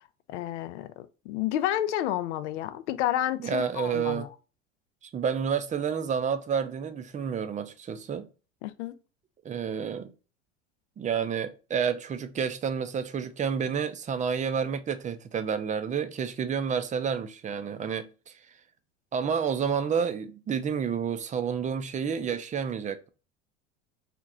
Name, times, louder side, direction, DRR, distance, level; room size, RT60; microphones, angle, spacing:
voice 1, 0.3-4.3 8.6-8.9, left 12 dB, 75° left, 0.5 m, -30 dB
voice 2, 3.4-4.3 5.1-8.3 9.4-10.1 11.0-18.3 19.1-23.1, right 7 dB, 20° right, 0.5 m, -29 dB
2.9 x 2.5 x 3.5 m
hypercardioid pair, 80°, 36 cm